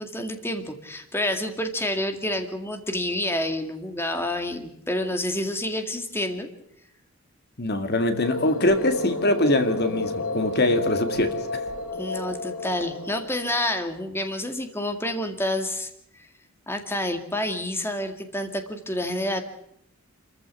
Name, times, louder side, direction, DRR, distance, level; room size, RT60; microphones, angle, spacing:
voice 1, 0.0-6.5 12.0-16.3 16.7-19.4, left 1 dB, 10° left, 6 dB, 2.0 m, -28 dB
voice 2, 7.6-11.6, left 1 dB, 45° left, 8 dB, 2.1 m, -23 dB
sound 1, 8.2-14.0, left 2 dB, 80° left, 2.8 m, -32 dB
28.0 x 15.0 x 8.3 m, 0.74 s
head